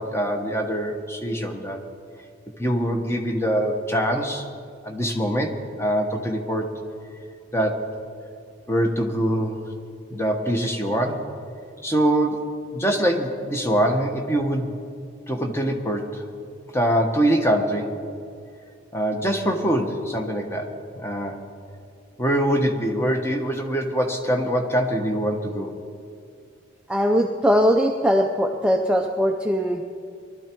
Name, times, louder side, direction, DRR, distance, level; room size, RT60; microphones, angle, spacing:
voice 1, 0.0-1.8 2.6-4.4 4.8-6.8 7.5-7.9 8.7-9.7 10.1-11.3 11.8-12.4 12.7-14.7 15.3-16.2 16.7-17.9 18.9-21.4 22.2-25.7, right 1 dB, 15° left, 3 dB, 1.1 m, -24 dB
voice 2, 26.9-29.8, equal, 5° right, 2 dB, 0.5 m, -20 dB
20.5 x 12.0 x 4.5 m, 2.4 s
head